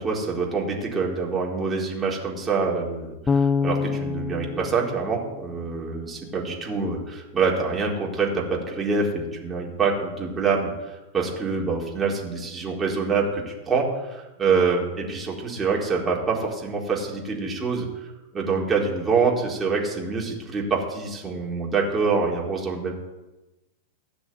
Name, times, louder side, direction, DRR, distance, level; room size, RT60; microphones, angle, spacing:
voice 1, 0.0-22.9, right 4 dB, 15° right, -3 dB, 4.3 m, -26 dB
Bass guitar, 3.3-6.3, left 5 dB, 15° left, 0.4 m, -27 dB
16.5 x 6.2 x 9.7 m, 1.1 s
figure-of-eight pair, 90°, 0 cm